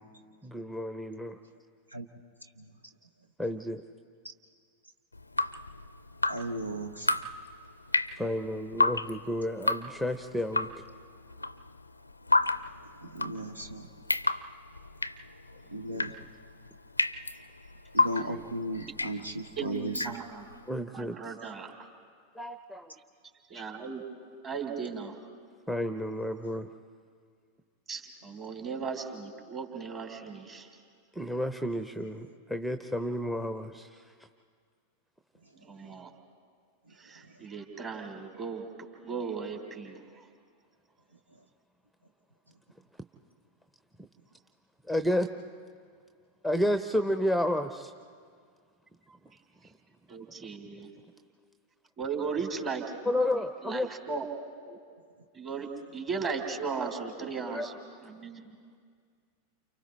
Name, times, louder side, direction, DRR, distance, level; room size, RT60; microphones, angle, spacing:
voice 1, 0.4-1.4 3.4-3.8 8.2-10.7 15.9-16.0 20.7-21.2 22.4-22.9 25.7-26.7 31.2-34.0 44.9-45.3 46.4-47.9 53.1-53.9 57.2-57.7, left 1 dB, 5° right, 8 dB, 0.8 m, -31 dB
Drip, 5.1-20.6, left 2 dB, 85° left, 0.5 m, -32 dB
voice 2, 6.3-7.1 13.1-13.9 15.7-16.1 17.9-20.0, right 1 dB, 80° right, 6 dB, 1.0 m, -35 dB
voice 3, 19.5-20.4 20.9-21.7 23.5-24.0 24.4-25.2 27.9-30.7 35.6-36.1 37.0-38.7 39.0-40.0 50.1-50.9 52.0-52.9 53.6-54.3 54.7-54.8 55.3-55.7 55.9-58.5, right 5 dB, 30° right, 3 dB, 3.3 m, -36 dB
29.5 x 29.0 x 3.3 m, 2.1 s
figure-of-eight pair, 90°, 0 cm